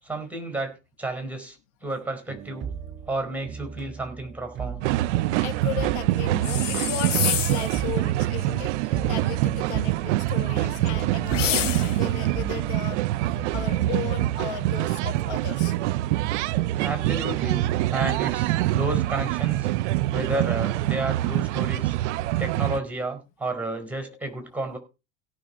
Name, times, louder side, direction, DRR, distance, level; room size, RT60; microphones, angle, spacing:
voice 1, 0.0-2.7 3.1-4.9 16.8-19.7 20.1-22.0 22.4-24.8, right 2 dB, 5° right, 4.6 m, -31 dB
sound 1, 2.3-14.0, right 8 dB, 30° right, 2.1 m, -38 dB
sound 2, 4.8-22.8, right 16 dB, 70° right, 0.5 m, -25 dB
voice 2, 5.4-15.8 24.1-24.2, left 11 dB, 65° left, 1.5 m, -36 dB
sound 3, 6.4-7.8 11.3-12.1, left 10 dB, 85° left, 0.8 m, -27 dB
17.0 x 6.4 x 4.3 m
hypercardioid pair, 75°, 36 cm